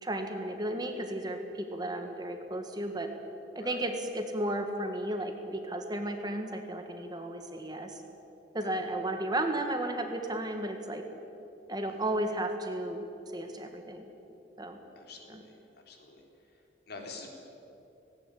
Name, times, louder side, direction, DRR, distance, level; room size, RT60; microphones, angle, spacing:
voice 1, 0.0-3.1 3.5-8.0 8.5-11.0 11.7-13.0 13.3-14.1 14.6-14.8 15.3-15.4, right 1 dB, 20° right, 5 dB, 1.6 m, -34 dB
voice 2, 15.0-15.5 15.9-16.2 16.9-17.3, left 3 dB, 55° left, 2 dB, 3.7 m, -46 dB
18.0 x 17.5 x 10.0 m, 2.9 s
head